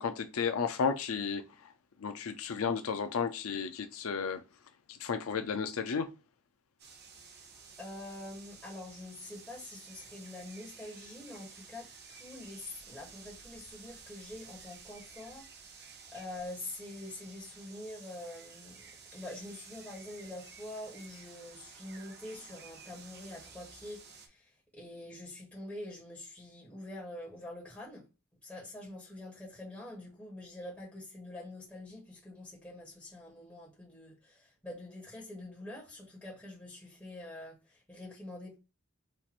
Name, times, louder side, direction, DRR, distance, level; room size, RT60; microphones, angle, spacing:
voice 1, 0.0-1.4 2.0-4.4 4.9-6.1, left 6 dB, 80° left, 0.5 m, -33 dB
sound 1, 6.8-24.3, right 5 dB, 50° right, 0.9 m, -53 dB
voice 2, 7.8-28.1 28.4-38.6, left 1 dB, 10° left, 1.4 m, -46 dB
4.5 x 2.5 x 4.3 m
head